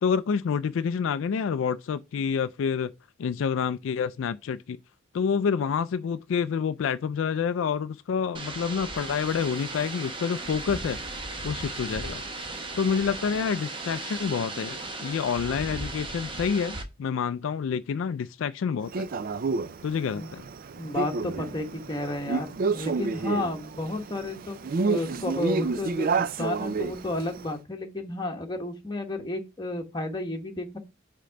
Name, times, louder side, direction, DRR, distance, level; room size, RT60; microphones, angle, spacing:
voice 1, 0.0-2.9 3.2-4.8 5.1-11.0 11.4-12.2 12.8-19.1 19.8-20.4, left 6 dB, 75° left, 0.3 m, -28 dB
sound 1, 8.3-16.8, right 2 dB, 25° right, 0.9 m, -36 dB
Male speech man speaking, 18.9-27.5, right 4 dB, 45° right, 0.4 m, -30 dB
voice 2, 20.8-30.8, left 2 dB, 20° left, 1.2 m, -32 dB
5.2 x 3.7 x 5.5 m
head